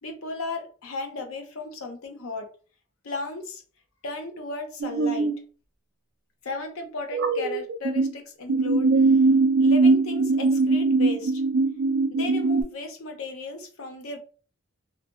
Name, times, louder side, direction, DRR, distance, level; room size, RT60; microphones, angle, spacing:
voice 1, 0.0-2.5 3.0-3.6 4.0-5.3 6.4-9.2 9.6-11.4 12.1-14.2, left 3 dB, 80° left, 4 dB, 0.6 m, -35 dB
sound 1, 4.8-5.3 7.1-8.1 8.5-12.6, right 3 dB, 50° right, 0.3 m, -21 dB
2.7 x 2.5 x 2.3 m, 0.38 s
head